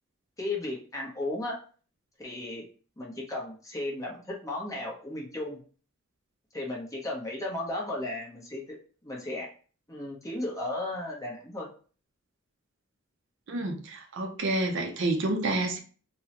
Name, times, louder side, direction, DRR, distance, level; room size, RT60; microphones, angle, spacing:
voice 1, 0.4-1.6 2.2-2.6 3.0-5.6 6.5-8.6 9.0-9.5 9.9-11.7, left 2 dB, 15° left, 0.7 m, -35 dB
voice 2, 13.5-15.8, right 2 dB, 60° right, 0.5 m, -29 dB
3.6 x 2.1 x 2.8 m
head